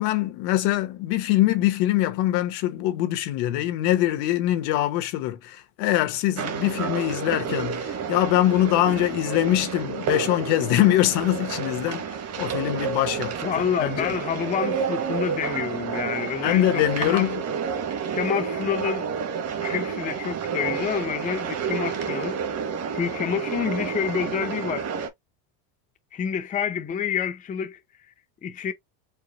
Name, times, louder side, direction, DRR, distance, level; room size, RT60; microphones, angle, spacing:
voice 1, 0.0-12.0 12.4-14.1 16.4-17.4, left 14 dB, 75° left, 1.1 m, -23 dB
sound 1, 6.4-25.1, right 6 dB, 40° right, 1.2 m, -30 dB
voice 2, 13.4-17.3 18.1-19.1 19.6-22.4 22.9-24.9 26.1-27.8 28.4-28.7, left 8 dB, 20° left, 0.6 m, -28 dB
4.8 x 2.1 x 3.8 m
cardioid pair, 145°, 40 cm